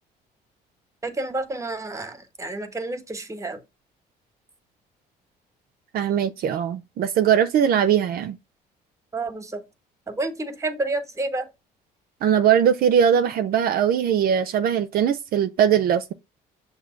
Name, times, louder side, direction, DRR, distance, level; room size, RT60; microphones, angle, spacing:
voice 1, 1.0-3.6 9.1-9.6 10.1-11.5, right 2 dB, 20° right, 1.1 m, -30 dB
voice 2, 5.9-8.4 12.2-16.1, right 8 dB, 60° right, 0.6 m, -20 dB
6.8 x 2.8 x 5.0 m
cardioid pair, 110°, 17 cm